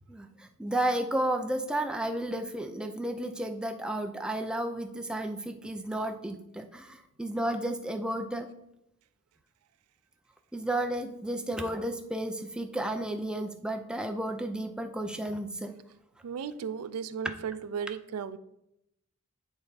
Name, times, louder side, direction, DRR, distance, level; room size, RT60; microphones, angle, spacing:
voice 1, 0.1-8.5 10.5-15.7, right 1 dB, 5° right, 5 dB, 0.4 m, -32 dB
voice 2, 16.2-18.4, right 6 dB, 80° right, 14 dB, 0.4 m, -35 dB
8.9 x 3.4 x 4.0 m, 0.84 s
head